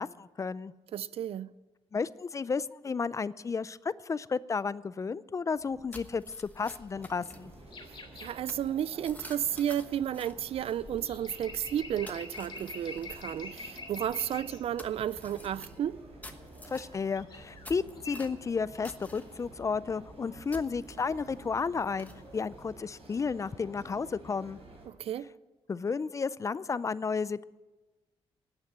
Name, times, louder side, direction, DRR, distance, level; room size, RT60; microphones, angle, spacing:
voice 1, 0.0-0.7 1.9-7.5 16.7-24.6 25.7-27.4, left 5 dB, 30° left, 0.4 m, -33 dB
voice 2, 0.9-1.5 8.2-16.0 24.9-25.3, right 10 dB, 70° right, 0.4 m, -33 dB
sound 1, 5.5-23.5, left 2 dB, 15° left, 1.1 m, -52 dB
sound 2, 6.9-24.9, right 2 dB, 90° right, 3.7 m, -51 dB
sound 3, 7.7-8.3 11.0-14.6 17.2-17.7 18.0-18.2, left 3 dB, 50° left, 2.7 m, -45 dB
12.0 x 8.1 x 9.0 m
cardioid pair, 105°, 10 cm